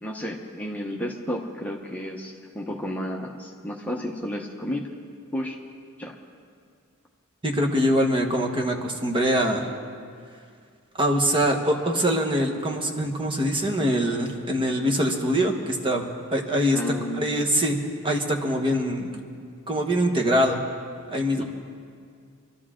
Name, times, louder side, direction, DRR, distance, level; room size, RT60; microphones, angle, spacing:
voice 1, 0.0-4.9 5.3-5.6 6.0-6.1 16.7-17.5 21.3-21.4, equal, 5° left, -2 dB, 0.9 m, -32 dB
voice 2, 7.4-9.7 11.0-16.0 16.3-16.8 17.1-17.8 18.0-19.2 19.7-20.6 21.1-21.4, equal, 25° right, 1 dB, 1.3 m, -23 dB
25.5 x 13.0 x 3.8 m, 2.2 s
head